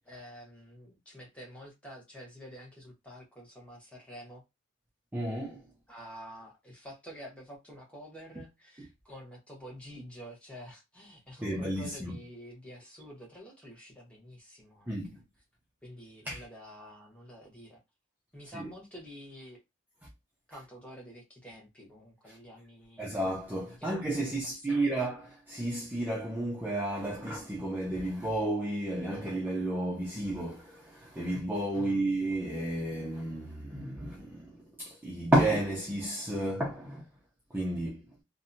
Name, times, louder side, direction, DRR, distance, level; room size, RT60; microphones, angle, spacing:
voice 1, 0.0-4.4 5.9-15.0 15.8-17.8 18.3-19.6 20.5-23.1 23.6-23.9 24.2-24.8 31.7-32.0, equal, 5° left, 0.9 m, -48 dB
voice 2, 5.1-5.6 11.4-12.2 14.9-15.2 16.3-16.4 18.5-18.7 22.3-22.4 23.0-37.1 37.5-38.1, right 1 dB, 10° right, 0.5 m, -32 dB
2.6 x 2.1 x 2.5 m
head